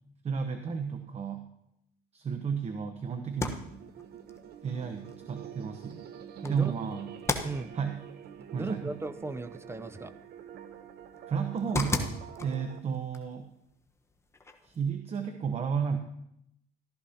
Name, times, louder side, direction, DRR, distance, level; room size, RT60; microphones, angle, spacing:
voice 1, 0.2-1.5 2.1-3.6 4.6-6.0 6.5-7.1 7.7-8.0 8.5-8.9 11.3-13.5 14.6-16.0, right 6 dB, 40° right, 7 dB, 0.9 m, -32 dB
sound 1, 3.2-14.9, left 3 dB, 15° left, 1.0 m, -40 dB
sound 2, 3.2-12.8, right 9 dB, 70° right, 0.9 m, -47 dB
voice 2, 6.4-6.7 7.4-7.7 8.5-10.1, right 2 dB, 15° right, 13 dB, 0.5 m, -36 dB
15.0 x 13.0 x 2.8 m, 0.78 s
cardioid pair, 110°, 17 cm